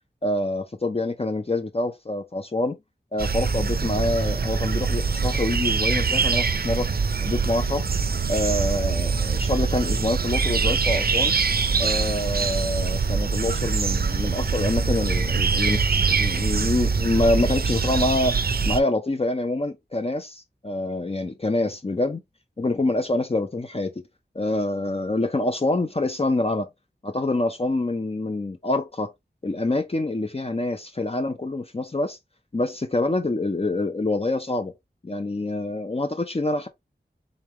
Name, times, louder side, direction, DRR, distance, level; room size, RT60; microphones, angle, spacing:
voice 1, 0.2-2.8 3.1-6.9 7.2-7.8 8.3-11.3 11.8-18.4 18.6-22.2 22.6-23.9 24.3-26.7 27.0-29.1 29.4-32.2 32.5-34.7 35.0-36.7, left 2 dB, 35° left, 0.7 m, -26 dB
sound 1, 3.2-18.8, right 5 dB, 55° right, 0.5 m, -24 dB
3.7 x 3.3 x 3.1 m
wide cardioid pair, 40°, 18 cm